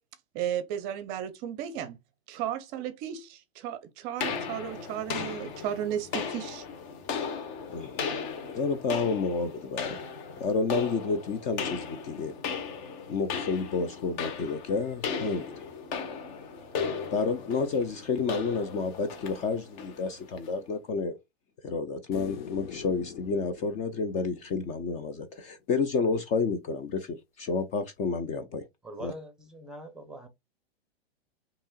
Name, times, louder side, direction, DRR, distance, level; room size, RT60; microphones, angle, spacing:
voice 1, 0.3-2.0 2.3-6.6, right 10 dB, 35° right, 0.6 m, -34 dB
sound 1, 4.2-20.6, left 5 dB, 45° left, 1.4 m, -36 dB
voice 2, 7.7-8.0 8.5-10.0 10.4-12.3 13.1-15.6 17.1-21.2 21.6-28.6 29.0-29.1, left 4 dB, 25° left, 0.4 m, -30 dB
sound 2, 22.1-25.4 28.0-28.1, left 8 dB, 65° left, 0.8 m, -44 dB
voice 3, 28.8-30.3, right 1 dB, ahead, 0.8 m, -43 dB
5.3 x 2.9 x 2.3 m
hypercardioid pair, 125°, 32 cm